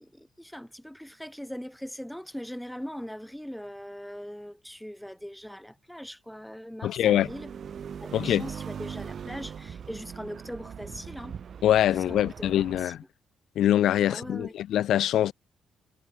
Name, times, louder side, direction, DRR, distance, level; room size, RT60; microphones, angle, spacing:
voice 1, 0.0-7.5 8.0-11.3 12.1-13.0 14.0-14.5, equal, ahead, 6.8 m, -41 dB
voice 2, 6.8-7.3 8.1-8.4 11.6-13.0 13.5-15.3, left 11 dB, 75° left, 1.4 m, -23 dB
sound 1, 7.0-12.8, right 7 dB, 55° right, 2.9 m, -40 dB
cardioid pair, 90°, 0 cm